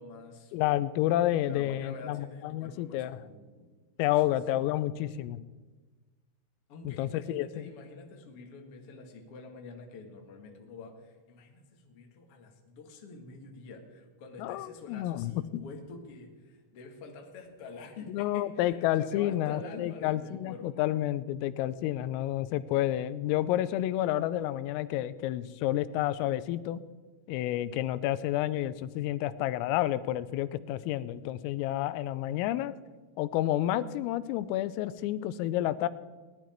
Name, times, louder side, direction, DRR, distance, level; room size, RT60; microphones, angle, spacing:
voice 1, 0.0-0.5 1.5-3.7 4.5-4.9 6.7-20.8, left 3 dB, 65° left, 2 dB, 1.4 m, -47 dB
voice 2, 0.5-3.1 4.0-5.4 6.8-7.7 14.4-15.6 18.1-26.8 27.3-32.7 33.2-35.9, left 13 dB, 85° left, 15 dB, 3.3 m, -30 dB
19.0 x 11.0 x 4.5 m, 1.3 s
omnidirectional pair, 5.9 m